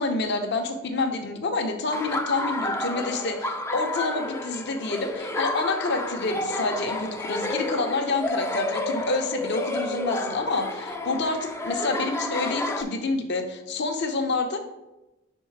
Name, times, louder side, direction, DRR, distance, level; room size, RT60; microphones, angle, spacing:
voice 1, 0.0-14.6, left 3 dB, 55° left, 5 dB, 0.7 m, -28 dB
Laughter, 1.9-12.8, left 2 dB, 15° left, 0.3 m, -30 dB
5.6 x 4.5 x 4.6 m, 0.98 s
head